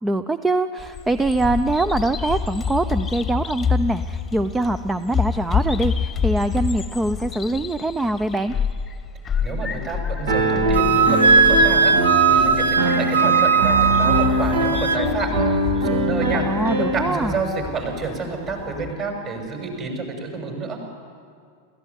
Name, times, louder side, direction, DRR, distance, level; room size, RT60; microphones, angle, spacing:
voice 1, 0.0-8.5 16.3-17.4, right 2 dB, 10° right, 12 dB, 0.6 m, -23 dB
Bird vocalization bird call bird song, 0.8-18.9, left 6 dB, 20° left, 1.2 m, -28 dB
voice 2, 9.4-12.0 12.3-15.3 15.7-16.4 16.8-20.8, right 4 dB, 35° right, 3 dB, 6.5 m, -29 dB
Piano, 10.3-17.1, right 1 dB, 55° right, 1.8 m, -22 dB
Wind instrument woodwind instrument, 10.7-15.0, right 5 dB, 70° right, 1.0 m, -18 dB
27.5 x 15.0 x 9.8 m, 2.2 s
figure-of-eight pair, 90°, 0 cm